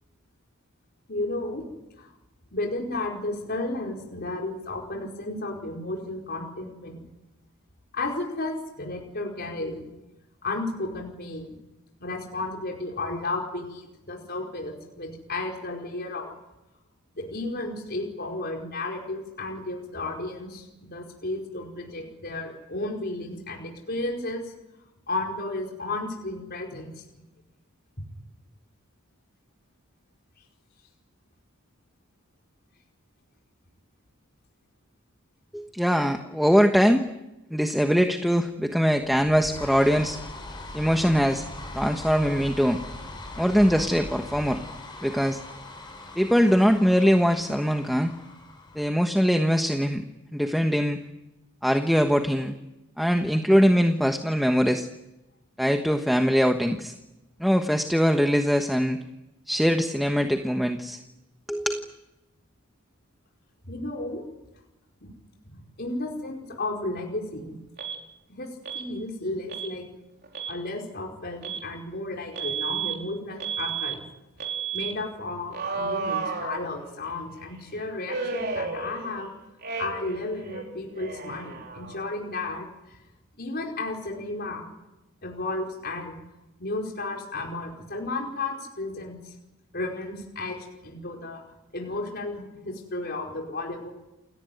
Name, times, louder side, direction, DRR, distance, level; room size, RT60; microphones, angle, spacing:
voice 1, 1.1-1.6 2.0-2.1 2.5-7.0 7.9-9.9 10.4-11.6 12.0-16.3 17.1-24.4 25.1-27.0 63.6-64.2 65.0-65.1 65.5-67.5 68.3-69.9 70.5-74.0 74.7-79.3 79.8-83.0 83.4-84.7 85.2-86.2 86.6-89.3 89.7-91.4 91.7-93.9, left 2 dB, 50° left, 0 dB, 4.9 m, -33 dB
voice 2, 35.5-37.1 37.5-40.2 40.7-41.4 41.7-42.8 43.4-44.6 45.0-45.4 46.2-48.1 48.7-50.0 50.3-51.0 51.6-52.5 53.0-54.9 55.6-56.9 57.4-59.0 59.5-61.0 61.5-61.8, equal, ahead, 5 dB, 1.2 m, -22 dB
sound 1, 39.0-49.5, left 2 dB, 20° left, 6.9 m, -41 dB
Alarm, 67.8-68.0 68.7-68.9 69.5-69.7 70.2-70.6 71.4-71.7 72.4-73.0 73.4-74.0 74.4-74.9 75.5-77.1 78.1-79.3 79.6-80.2 80.4-82.1, right 5 dB, 50° right, 4.3 m, -32 dB
29.0 x 18.5 x 9.4 m, 0.96 s
head